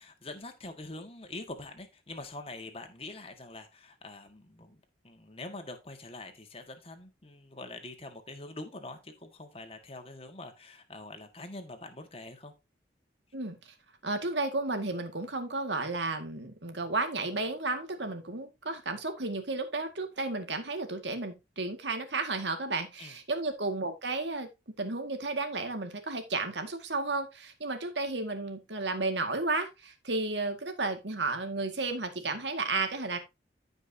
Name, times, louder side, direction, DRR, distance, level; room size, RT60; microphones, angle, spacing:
voice 1, 0.0-12.5 23.0-23.1, left 2 dB, 30° left, 5 dB, 1.7 m, -44 dB
voice 2, 14.0-24.5 24.8-33.2, right 3 dB, 75° right, 6 dB, 1.9 m, -33 dB
15.0 x 5.5 x 2.7 m, 0.24 s
head